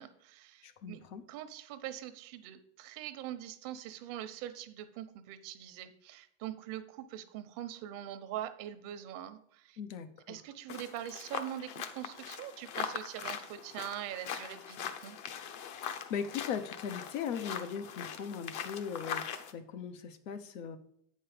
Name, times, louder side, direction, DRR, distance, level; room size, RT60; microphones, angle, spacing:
voice 1, 0.0-9.8 10.3-15.2, right 12 dB, 55° right, 10 dB, 0.9 m, -43 dB
voice 2, 0.6-1.2 9.8-10.4 15.7-20.8, left 7 dB, 85° left, 8 dB, 1.1 m, -39 dB
sound 1, 10.7-19.5, left 8 dB, 50° left, 0.9 m, -41 dB
7.8 x 5.5 x 5.1 m, 0.70 s
supercardioid pair, 130°, 38 cm